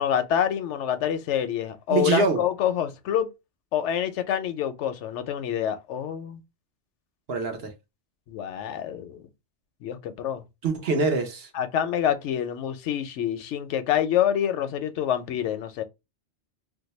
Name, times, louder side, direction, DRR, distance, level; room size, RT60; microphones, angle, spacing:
voice 1, 0.0-3.3 3.7-6.4 8.3-9.2 9.8-10.4 11.5-15.8, left 9 dB, 80° left, 0.9 m, -26 dB
voice 2, 1.9-2.5 7.3-7.7 10.6-11.5, right 4 dB, 60° right, 0.9 m, -24 dB
2.6 x 2.2 x 4.0 m
omnidirectional pair, 1.2 m